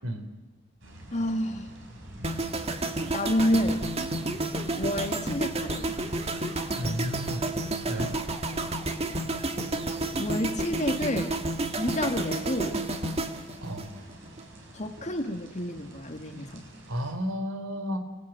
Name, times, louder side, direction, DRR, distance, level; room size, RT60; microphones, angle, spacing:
sound 1, 0.8-17.1, right 1 dB, 60° right, 6.0 m, -48 dB
voice 1, 1.1-1.7 3.1-3.9 4.8-5.9 10.1-11.4 11.8-12.8 14.7-16.7, left 1 dB, 35° left, 5 dB, 1.9 m, -29 dB
sound 2, 2.2-14.4 14.7-15.0, right 2 dB, 30° right, 1.9 m, -31 dB
voice 2, 6.8-7.5 7.9-8.1 13.6-13.9 16.9-18.0, equal, 80° right, 8 dB, 3.6 m, -32 dB
29.0 x 19.0 x 9.1 m, 1.2 s
head